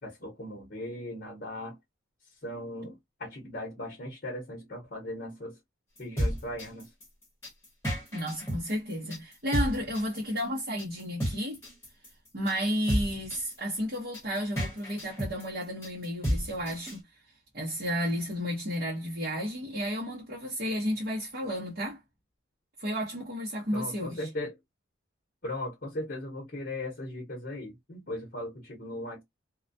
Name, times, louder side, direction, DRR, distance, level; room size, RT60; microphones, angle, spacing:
voice 1, 0.0-1.8 2.4-5.6 6.0-6.9 23.7-24.6 25.4-29.2, left 1 dB, 45° left, 0.8 m, -38 dB
sound 1, 6.0-17.0, equal, 15° left, 1.0 m, -32 dB
voice 2, 8.1-11.6 12.3-17.0 17.5-22.0 22.8-24.3, equal, 50° right, 0.8 m, -32 dB
2.3 x 2.1 x 2.5 m
head